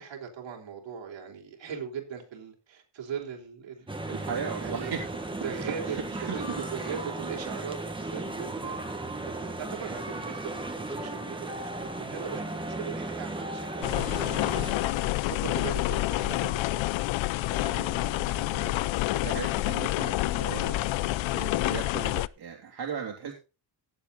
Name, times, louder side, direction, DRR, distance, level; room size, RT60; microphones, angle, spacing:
voice 1, 0.0-4.0 4.6-4.9 5.4-16.8, right 7 dB, 80° right, 1 dB, 3.8 m, -39 dB
sound 1, 3.9-14.7, right 2 dB, 10° right, 1.6 m, -36 dB
voice 2, 4.0-5.3 5.8-6.6 17.3-23.3, right 7 dB, 60° right, 0 dB, 2.9 m, -38 dB
sound 2, 13.8-22.3, left 17 dB, 85° left, 0.5 m, -28 dB
17.0 x 7.6 x 3.9 m, 0.31 s
cardioid pair, 140°, 45 cm